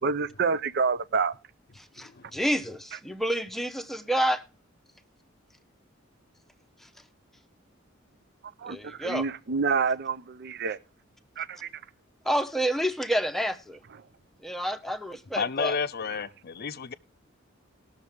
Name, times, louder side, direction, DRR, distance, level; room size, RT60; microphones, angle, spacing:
voice 1, 0.0-1.4 8.6-10.8 11.4-11.7 16.1-16.2, right 5 dB, 55° right, 0.6 m, -28 dB
voice 2, 2.0-4.4 8.6-9.2 12.2-13.8 14.4-15.8, equal, ahead, 0.7 m, -29 dB
voice 3, 15.3-16.9, left 5 dB, 50° left, 0.6 m, -30 dB
19.0 x 6.6 x 3.4 m
head